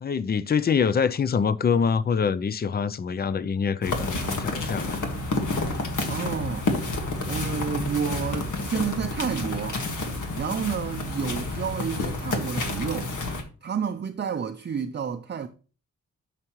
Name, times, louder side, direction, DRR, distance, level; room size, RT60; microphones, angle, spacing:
voice 1, 0.0-5.0, left 6 dB, 35° left, 0.4 m, -25 dB
sound 1, 3.8-13.4, left 2 dB, 80° left, 1.7 m, -29 dB
voice 2, 6.1-6.7 7.3-9.8 10.3-13.1 13.6-15.5, right 7 dB, 35° right, 0.5 m, -30 dB
10.5 x 6.7 x 3.0 m
wide cardioid pair, 145°, 30 cm